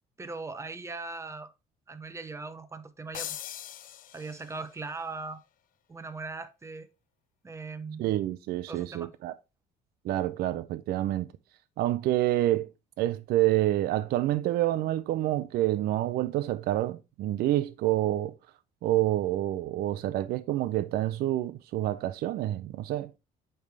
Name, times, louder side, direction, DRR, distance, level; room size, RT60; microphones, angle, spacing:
voice 1, 0.2-1.5 1.9-3.4 4.1-5.4 5.9-6.9 7.4-8.1 8.7-9.1, right 3 dB, 15° right, 0.7 m, -39 dB
sound 1, 3.1-4.8, left 11 dB, 55° left, 0.5 m, -41 dB
voice 2, 8.0-9.3 10.0-11.3 11.8-12.7 13.0-18.3 18.8-23.1, right 14 dB, 65° right, 0.4 m, -28 dB
8.6 x 3.3 x 3.4 m
cardioid pair, 110°, 17 cm